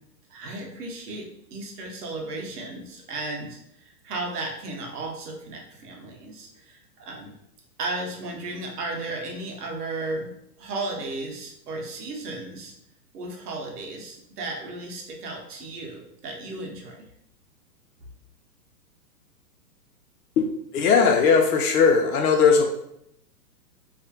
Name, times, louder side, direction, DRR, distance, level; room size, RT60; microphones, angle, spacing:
voice 1, 0.3-7.3 7.8-10.3 10.6-12.7 13.1-17.0, right 2 dB, 70° right, 0 dB, 0.9 m, -35 dB
voice 2, 20.7-22.8, left 5 dB, 60° left, 1 dB, 0.5 m, -19 dB
2.4 x 2.1 x 2.7 m, 0.77 s
hypercardioid pair, 140°, 49 cm